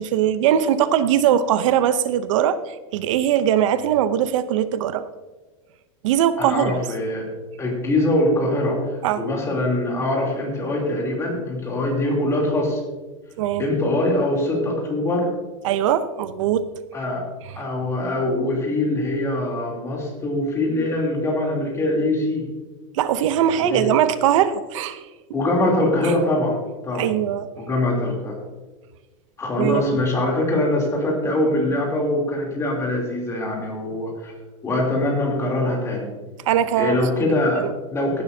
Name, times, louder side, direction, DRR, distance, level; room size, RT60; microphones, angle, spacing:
voice 1, 0.0-5.0 6.0-6.8 9.0-9.2 13.4-13.7 15.6-16.7 22.9-25.0 26.0-26.1 26.9-27.5 29.6-30.1 36.5-37.0, right 10 dB, 65° right, 13 dB, 0.7 m, -21 dB
voice 2, 6.4-7.3 7.6-12.8 13.6-15.3 16.9-17.2 17.5-22.4 23.6-23.9 25.3-26.6 26.8-27.1 27.6-28.4 29.4-34.3 34.6-36.1 36.8-38.2, left 1 dB, 15° left, -2 dB, 3.1 m, -23 dB
16.0 x 11.5 x 2.7 m, 1.2 s
supercardioid pair, 150°, 17 cm